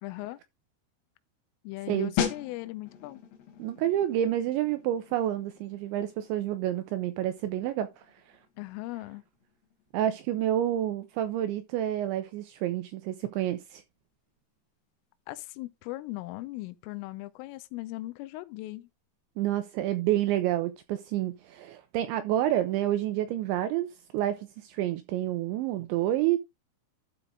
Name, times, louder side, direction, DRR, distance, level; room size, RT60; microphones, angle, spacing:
voice 1, 0.0-0.4 1.6-3.2 8.6-9.2 15.3-18.9, left 19 dB, 80° left, 3.3 m, -38 dB
sound 1, 2.2-12.7 12.9-13.2, left 8 dB, 65° left, 3.1 m, -40 dB
voice 2, 3.6-8.0 9.9-13.8 19.4-23.9 24.1-26.4, right 12 dB, 80° right, 2.7 m, -29 dB
12.0 x 5.5 x 3.7 m
omnidirectional pair, 5.9 m